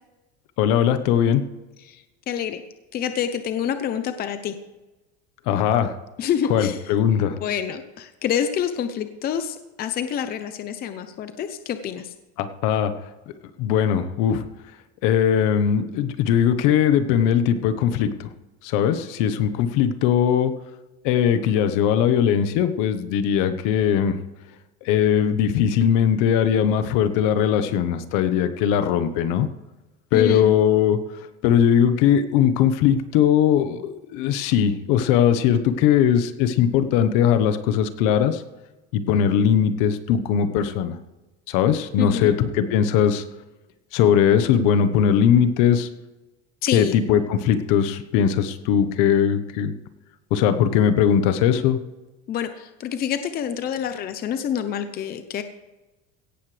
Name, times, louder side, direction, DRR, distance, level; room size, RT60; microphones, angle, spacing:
voice 1, 0.6-1.4 5.5-5.9 6.5-7.4 12.4-12.9 13.6-14.4 15.0-18.3 18.6-20.5 21.0-24.2 24.8-29.5 30.1-31.0 31.4-38.4 38.9-41.0 41.5-43.2 43.9-45.9 46.7-49.7 50.3-51.8, left 9 dB, 65° left, 10 dB, 1.3 m, -20 dB
voice 2, 1.8-2.6 2.9-4.5 6.2-12.1 30.1-30.5 42.0-42.4 46.6-47.0 52.3-55.4, left 9 dB, 30° left, 9 dB, 0.7 m, -27 dB
17.0 x 14.0 x 3.4 m, 1.1 s
cardioid pair, 160°, 33 cm